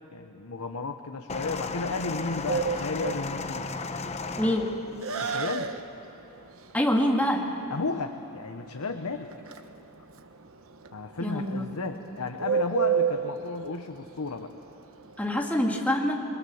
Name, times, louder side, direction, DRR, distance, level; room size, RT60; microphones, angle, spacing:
voice 1, 0.1-3.7 5.2-5.7 7.7-9.3 10.9-14.5, left 3 dB, 85° left, 6 dB, 0.9 m, -33 dB
sound 1, 1.3-5.4 6.3-6.4, left 3 dB, 30° left, 0.9 m, -35 dB
Bird, 2.5-15.5, right 6 dB, 70° right, 1.1 m, -32 dB
voice 2, 4.4-4.7 6.7-7.4 11.2-11.7 15.2-16.2, left 1 dB, 5° left, 0 dB, 2.2 m, -25 dB
27.5 x 21.5 x 7.2 m, 2.9 s
head